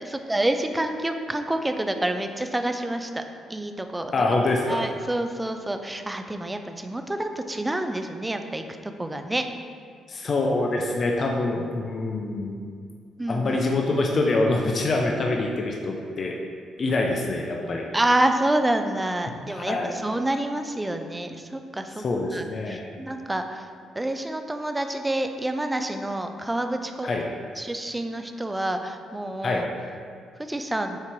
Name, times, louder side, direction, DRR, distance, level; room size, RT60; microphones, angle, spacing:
voice 1, 0.0-3.2 3.5-4.1 4.7-9.5 13.2-13.6 17.9-22.0 22.3-27.1 27.6-29.7 30.5-31.0, right 1 dB, 15° right, 6 dB, 0.4 m, -28 dB
voice 2, 4.1-4.8 10.1-12.6 13.3-16.4 16.8-17.8 19.5-20.0 22.0-22.9 27.0-27.2 29.4-29.6, left 2 dB, 45° left, 0 dB, 0.5 m, -25 dB
7.5 x 2.9 x 4.6 m, 2.2 s
cardioid pair, 90°, 0 cm